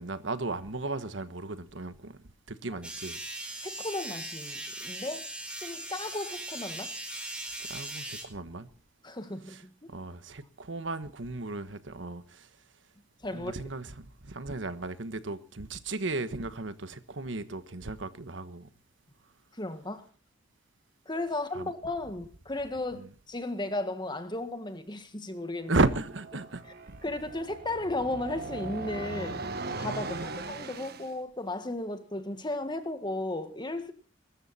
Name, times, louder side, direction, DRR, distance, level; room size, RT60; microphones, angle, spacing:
voice 1, 0.0-3.2 7.6-8.7 9.5-9.6 9.9-12.5 13.3-18.7 21.5-21.7 22.9-23.1 25.7-27.0 30.1-30.3, right 2 dB, 75° right, 1.3 m, -34 dB
sound 1, 2.8-8.2, right 1 dB, 5° right, 4.5 m, -39 dB
voice 2, 3.6-5.3 5.6-6.9 9.0-9.9 13.2-13.5 19.6-20.0 21.1-25.8 27.0-29.5 29.8-33.9, left 2 dB, 25° left, 1.8 m, -35 dB
sound 2, 25.7-31.1, right 3 dB, 55° right, 1.6 m, -39 dB
23.0 x 13.0 x 4.3 m
head